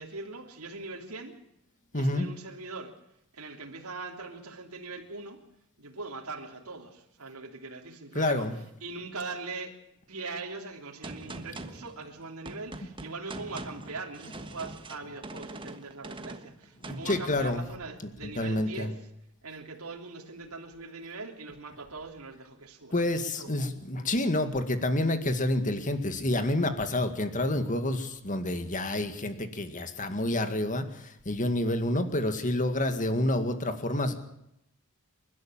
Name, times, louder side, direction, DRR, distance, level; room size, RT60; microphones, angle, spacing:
voice 1, 0.0-1.4 1.9-2.9 3.3-5.4 5.8-9.8 10.1-19.1 19.4-23.0 23.3-23.8, right 3 dB, 75° right, 1 dB, 3.3 m, -41 dB
voice 2, 1.9-2.3 8.2-8.5 16.8-17.6 18.2-18.9 22.9-34.2, left 1 dB, 35° left, 8 dB, 2.0 m, -28 dB
Gunshot gunfire, 11.0-17.5, right 2 dB, 25° right, 1.4 m, -43 dB
28.5 x 12.0 x 8.9 m, 0.81 s
head